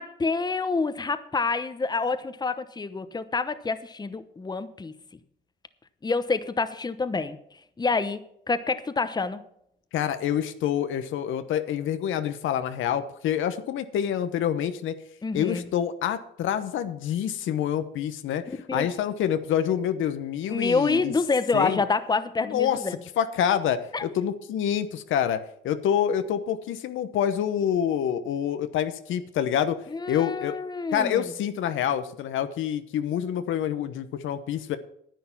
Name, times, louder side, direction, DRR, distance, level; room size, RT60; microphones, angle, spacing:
voice 1, 0.0-4.9 6.0-7.4 7.8-9.4 15.2-15.6 18.5-18.9 20.5-23.0 23.9-24.1 29.9-31.3, left 4 dB, 20° left, 12 dB, 0.9 m, -27 dB
voice 2, 9.9-15.0 15.3-18.4 18.7-21.1 21.5-21.8 22.5-22.8 23.2-29.8 30.1-30.6 30.9-34.8, left 9 dB, 80° left, 10 dB, 1.0 m, -27 dB
10.5 x 9.3 x 5.8 m, 0.72 s
cardioid pair, 90°, 20 cm